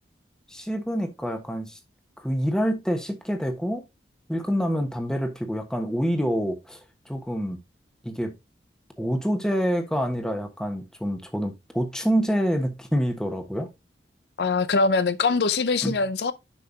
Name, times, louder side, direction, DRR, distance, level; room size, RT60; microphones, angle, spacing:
voice 1, 0.5-1.8 2.2-3.8 4.3-6.8 7.0-7.6 8.0-8.3 9.0-13.7 15.8-15.9, equal, 5° left, 1.2 m, -27 dB
voice 2, 14.4-16.3, left 4 dB, 65° left, 0.5 m, -23 dB
10.0 x 5.7 x 2.8 m
head